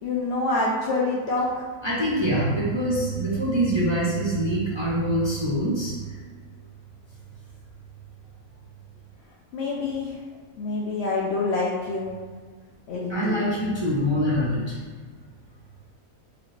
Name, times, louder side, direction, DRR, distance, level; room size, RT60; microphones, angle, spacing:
voice 1, 0.0-1.6 9.5-10.1 10.6-12.2 12.9-13.4, left 3 dB, 60° left, -5 dB, 0.7 m, -26 dB
voice 2, 1.8-5.9 13.1-14.9, equal, 25° right, -7 dB, 0.6 m, -24 dB
4.9 x 2.4 x 3.2 m, 1.5 s
omnidirectional pair, 1.5 m